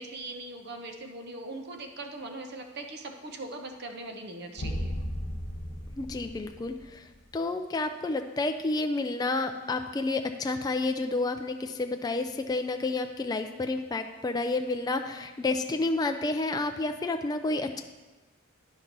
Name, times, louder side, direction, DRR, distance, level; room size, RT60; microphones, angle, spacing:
voice 1, 0.0-4.9, right 2 dB, 50° right, 4 dB, 0.8 m, -40 dB
sound 1, 4.6-7.2, equal, 80° left, 1.1 m, -35 dB
voice 2, 6.0-17.8, left 2 dB, 20° left, 6 dB, 0.3 m, -30 dB
10.0 x 6.0 x 3.9 m, 1.2 s
head